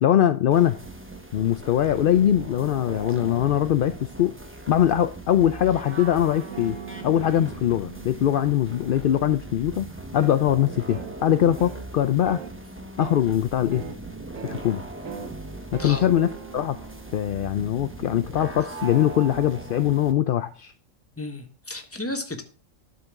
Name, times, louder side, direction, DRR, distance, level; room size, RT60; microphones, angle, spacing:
voice 1, 0.0-0.8 1.3-4.3 4.7-6.8 7.0-9.9 10.1-12.4 13.0-13.8 14.4-14.8 15.7-16.8 17.1-20.7, left 11 dB, 65° left, 11 dB, 0.5 m, -22 dB
sound 1, 0.5-20.1, right 2 dB, 10° right, 0.9 m, -40 dB
sound 2, 5.4-9.4 10.2-10.4 10.9-11.2 11.6-11.9 12.3-12.5 13.0-13.2 13.7-14.0 14.4-14.7 15.1-15.3 15.7-18.2, right 7 dB, 75° right, 1.3 m, -41 dB
voice 2, 21.2-22.4, left 2 dB, 10° left, 5 dB, 1.1 m, -33 dB
11.0 x 6.8 x 3.6 m, 0.37 s
omnidirectional pair, 1.4 m